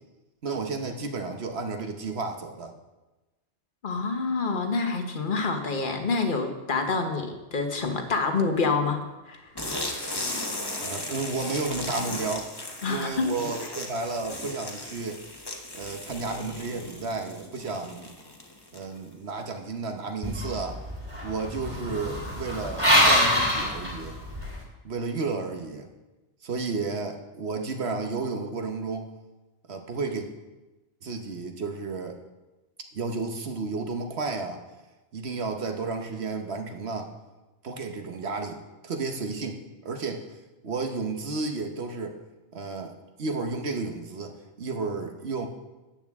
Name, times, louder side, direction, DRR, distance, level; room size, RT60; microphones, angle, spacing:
voice 1, 0.4-2.7 10.8-12.5 12.9-15.2 15.7-18.1 18.7-20.8 21.2-24.2 24.8-25.9 26.4-29.1 29.7-30.3 31.0-32.2 32.9-34.6 35.1-37.1 37.6-38.6 38.8-40.4 40.6-42.1 42.5-45.5, right 4 dB, 65° right, 4 dB, 1.3 m, -32 dB
voice 2, 3.8-9.5 12.8-13.3, left 4 dB, 45° left, 5 dB, 1.2 m, -27 dB
sound 1, 9.6-19.1, left 2 dB, 20° left, 1.1 m, -36 dB
sound 2, 20.2-24.6, equal, 25° right, 2.5 m, -25 dB
13.0 x 8.8 x 3.6 m, 1.1 s
omnidirectional pair, 1.2 m